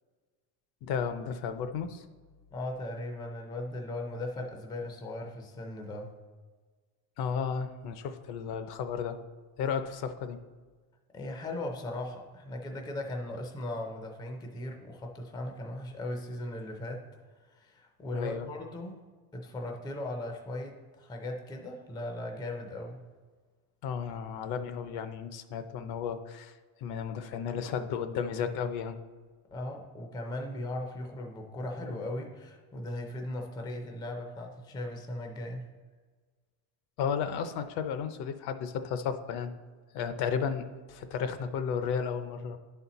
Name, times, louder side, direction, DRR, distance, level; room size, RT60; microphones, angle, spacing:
voice 1, 0.8-2.0 7.2-9.2 9.6-10.4 18.1-18.5 23.8-26.5 26.8-29.0 37.0-39.5 39.9-42.6, left 7 dB, 55° left, 10 dB, 0.6 m, -33 dB
voice 2, 2.5-6.1 11.1-17.1 17.4-19.0 19.3-23.0 29.5-35.7, left 1 dB, 10° left, 2 dB, 0.4 m, -38 dB
10.5 x 4.3 x 4.0 m, 1.4 s
cardioid pair, 165°, 46 cm